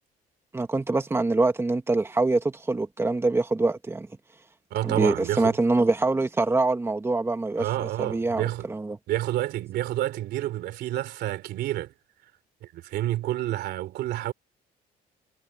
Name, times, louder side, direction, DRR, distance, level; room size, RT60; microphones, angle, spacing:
voice 1, 0.5-4.1 4.8-9.0, right 3 dB, 15° right, 1.7 m, -24 dB
voice 2, 4.7-5.6 7.6-8.7 9.1-11.9 12.6-14.3, right 14 dB, 75° right, 3.2 m, -29 dB
cardioid pair, 110°, 17 cm